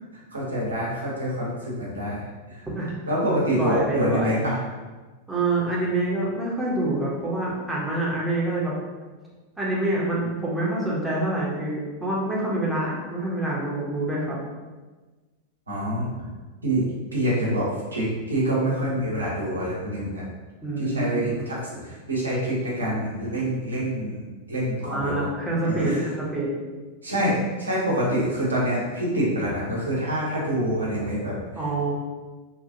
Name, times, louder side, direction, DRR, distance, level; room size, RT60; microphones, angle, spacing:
voice 1, 0.3-2.2 2.5-2.6 3.1-4.5 15.7-16.3 16.6-17.7 17.9-20.2 20.8-25.3 25.7-26.0 27.0-31.3, right 1 dB, 80° right, -5 dB, 0.8 m, -26 dB
voice 2, 3.4-4.4 5.3-8.7 9.6-14.4 20.6-21.3 24.8-26.5 31.6-32.0, right 2 dB, 5° right, -6 dB, 0.8 m, -26 dB
2.8 x 2.4 x 2.5 m, 1.3 s
figure-of-eight pair, 90°, 0 cm